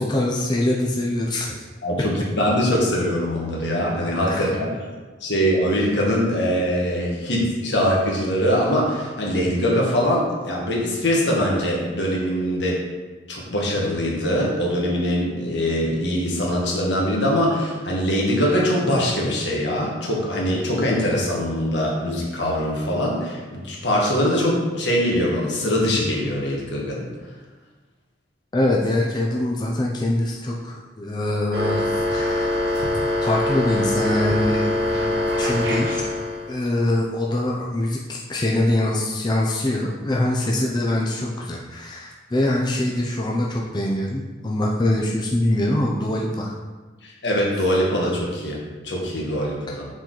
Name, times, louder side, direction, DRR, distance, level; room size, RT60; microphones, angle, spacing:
voice 1, 0.0-1.6 4.3-4.5 28.5-32.5 33.2-36.0 36.5-46.5, left 1 dB, 25° left, -2 dB, 0.6 m, -24 dB
voice 2, 1.8-4.8 5.2-12.8 13.3-27.1 47.0-49.9, equal, 75° left, -3 dB, 1.6 m, -22 dB
sound 1, 31.5-36.5, left 1 dB, 65° right, 1.0 m, -23 dB
6.9 x 4.5 x 4.0 m, 1.3 s
head